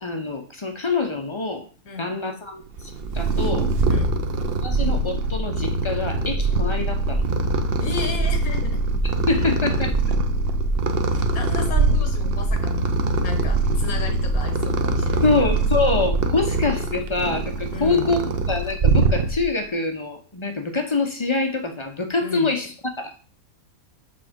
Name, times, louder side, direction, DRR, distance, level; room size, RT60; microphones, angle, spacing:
voice 1, 0.0-1.6 2.0-2.6 3.1-3.7 4.6-7.2 9.3-10.0 15.2-23.1, left 3 dB, 35° left, 6 dB, 0.5 m, -25 dB
voice 2, 1.8-2.1 3.9-4.1 7.8-8.8 11.1-12.9 13.2-15.6 17.7-18.1 22.2-22.5, left 4 dB, 80° left, 6 dB, 1.6 m, -34 dB
Purr, 2.8-19.6, right 2 dB, 55° right, 0.7 m, -23 dB
6.6 x 3.4 x 5.0 m, 0.39 s
omnidirectional pair, 1.5 m